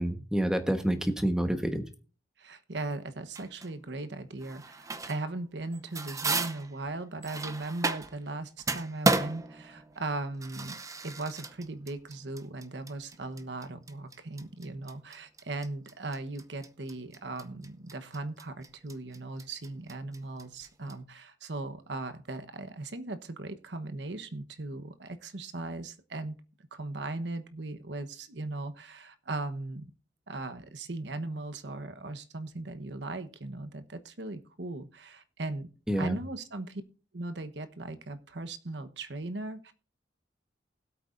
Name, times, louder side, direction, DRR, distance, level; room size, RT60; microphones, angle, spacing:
voice 1, 0.0-1.8 35.9-36.2, right 1 dB, 5° right, 7 dB, 1.2 m, -28 dB
voice 2, 2.4-26.4 26.7-29.9 30.3-35.7 36.0-36.8 37.1-39.7, right 2 dB, 75° right, 10 dB, 1.1 m, -38 dB
sound 1, 3.4-3.7 4.4-5.3 5.6-8.3 8.6-20.9, right 3 dB, 20° right, 0.7 m, -34 dB
20.5 x 8.4 x 2.6 m, 0.37 s
head